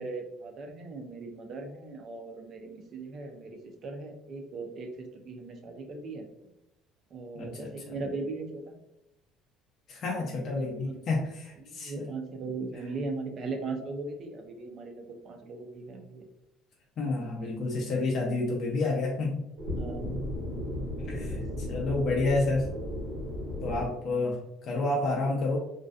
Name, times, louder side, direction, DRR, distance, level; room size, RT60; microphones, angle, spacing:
voice 1, 0.0-6.3 7.1-8.7 10.5-11.1 11.6-16.3 19.7-20.2 21.2-21.4, right 3 dB, 35° right, 4 dB, 0.3 m, -39 dB
voice 2, 7.4-7.7 9.9-12.1 17.0-19.4 21.1-21.4 21.7-22.7 23.6-24.4 24.6-25.6, left 2 dB, 35° left, -2 dB, 0.4 m, -29 dB
sound 1, 19.6-23.9, left 1 dB, 90° right, 1.0 m, -35 dB
2.5 x 2.2 x 2.3 m, 0.85 s
cardioid pair, 170°, 0 cm